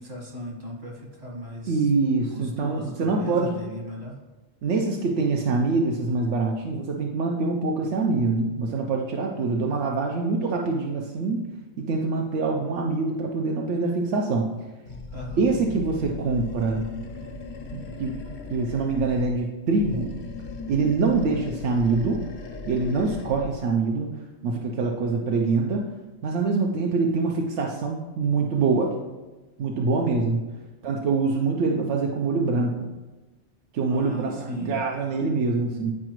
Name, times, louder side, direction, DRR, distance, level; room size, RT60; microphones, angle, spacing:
voice 1, 0.0-1.9 2.3-4.2 15.1-15.4 17.2-17.3 33.9-34.8, left 1 dB, 65° right, -2 dB, 1.8 m, -37 dB
voice 2, 1.7-3.6 4.6-11.4 11.8-14.5 15.4-16.9 17.7-18.1 18.5-20.1 20.7-22.2 22.6-24.1 24.4-25.9 26.2-28.9 29.6-30.4 30.8-32.9 33.7-35.9, right 3 dB, 90° right, 1 dB, 1.0 m, -24 dB
Animal, 14.9-19.4 19.7-23.6, left 3 dB, 70° left, 1.0 m, -38 dB
9.8 x 4.8 x 3.0 m, 1.2 s
omnidirectional pair, 1.2 m